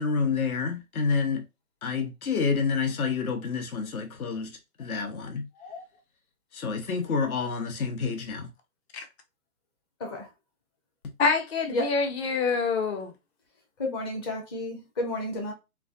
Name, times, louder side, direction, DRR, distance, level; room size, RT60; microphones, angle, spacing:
voice 1, 0.0-1.4 1.8-5.5 6.5-8.5, left 5 dB, 70° left, 1.1 m, -28 dB
voice 2, 11.2-13.1, left 4 dB, 45° left, 0.8 m, -26 dB
voice 3, 13.8-15.5, left 1 dB, 20° left, 0.5 m, -31 dB
3.1 x 2.2 x 2.5 m
hypercardioid pair, 135°, 45 cm